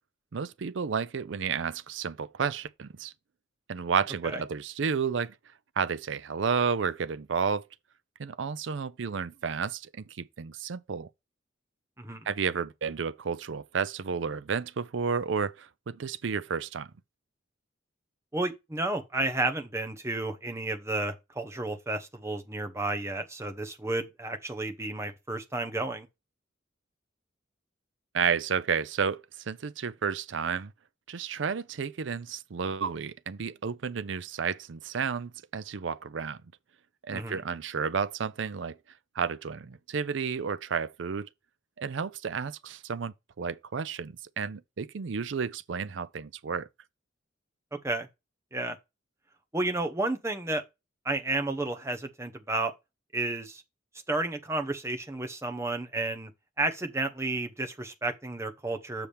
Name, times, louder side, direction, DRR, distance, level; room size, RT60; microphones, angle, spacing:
voice 1, 0.3-3.1 3.7-5.3 5.8-7.7 8.2-9.9 10.2-11.1 12.3-16.9 28.1-30.7 31.1-36.4 37.0-38.8 39.2-41.3 41.8-46.7, right 6 dB, 65° right, 0.5 m, -31 dB
voice 2, 18.3-26.1 37.1-37.4 47.8-48.1 48.5-48.8 49.5-50.6 51.0-52.7 53.1-53.6 54.1-56.3 56.6-59.1, right 2 dB, 15° right, 0.9 m, -32 dB
7.0 x 5.8 x 3.3 m
head